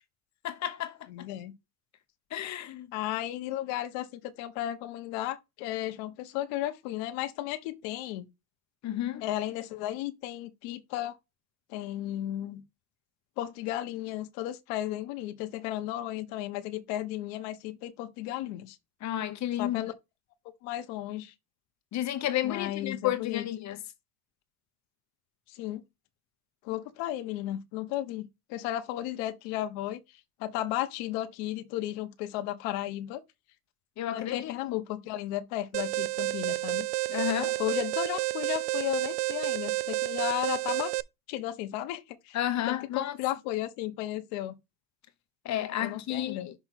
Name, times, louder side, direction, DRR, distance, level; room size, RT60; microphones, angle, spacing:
voice 1, 0.4-1.3 2.3-2.9 8.8-9.2 19.0-19.8 21.9-23.8 34.0-34.7 37.1-37.6 42.3-43.2 45.4-46.5, left 12 dB, 35° left, 0.8 m, -31 dB
voice 2, 1.1-1.5 2.9-8.3 9.2-11.2 11.7-12.6 13.4-18.8 19.6-19.9 20.6-21.3 22.4-23.4 25.5-25.8 26.6-30.0 30.4-33.2 34.1-36.9 37.6-40.9 41.3-42.4 42.7-44.6 45.8-46.5, left 14 dB, 65° left, 1.2 m, -34 dB
Alarm, 35.7-41.0, right 23 dB, 85° right, 0.6 m, -30 dB
6.2 x 3.2 x 5.8 m
supercardioid pair, 120°, 49 cm